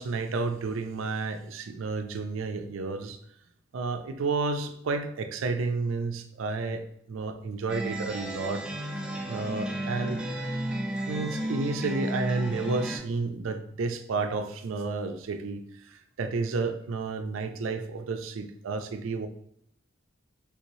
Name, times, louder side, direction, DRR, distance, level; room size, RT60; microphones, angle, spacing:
voice 1, 0.0-3.2 3.7-6.8 7.1-8.6 9.3-10.2 11.1-19.3, right 3 dB, 90° right, 7 dB, 0.4 m, -31 dB
sound 1, 7.7-13.0, right 1 dB, 5° right, 0.4 m, -33 dB
3.4 x 3.0 x 2.7 m, 0.74 s
head